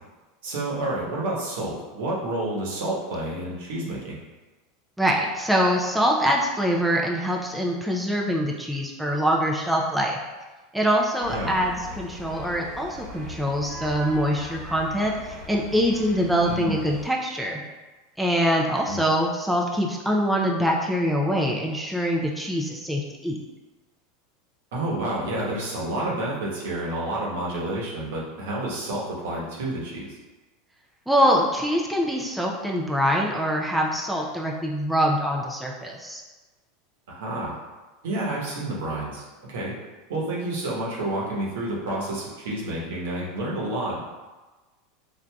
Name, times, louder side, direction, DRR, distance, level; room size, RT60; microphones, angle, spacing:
voice 1, 0.4-4.2 11.3-11.5 16.5-16.8 18.9-19.0 24.7-30.2 37.1-37.6 38.0-39.7 40.1-44.1, right 1 dB, 80° right, -4 dB, 1.0 m, -29 dB
voice 2, 5.0-10.2 10.7-17.6 18.2-23.4 31.1-36.2, equal, 5° right, -2 dB, 0.4 m, -24 dB
sound 1, 11.2-17.1, left 1 dB, 50° right, 0.9 m, -40 dB
4.6 x 2.5 x 2.2 m, 1.2 s
supercardioid pair, 130°, 0 cm